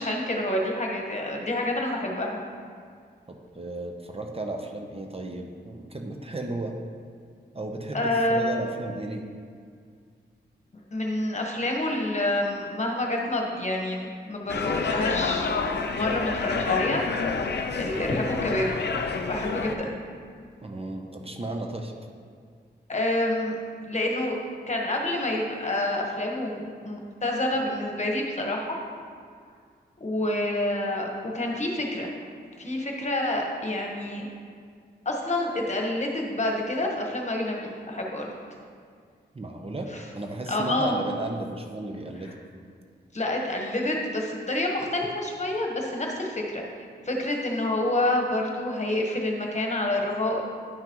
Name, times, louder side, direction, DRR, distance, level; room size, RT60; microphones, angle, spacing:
voice 1, 0.0-2.4 7.9-8.6 10.7-15.6 15.9-17.0 17.4-18.7 19.2-19.9 22.9-23.5 23.9-24.4 24.7-28.8 30.0-32.1 32.6-34.3 35.0-38.3 40.5-40.9 43.1-46.6 47.0-50.4, left 1 dB, 40° left, 0 dB, 1.3 m, -28 dB
voice 2, 3.3-6.8 7.5-9.2 20.6-21.9 39.3-39.9 40.1-42.3, right 2 dB, 30° right, 3 dB, 0.8 m, -34 dB
sound 1, 14.5-19.7, left 5 dB, 70° left, 0.6 m, -28 dB
10.5 x 5.8 x 3.0 m, 2.1 s
cardioid pair, 70°, 18 cm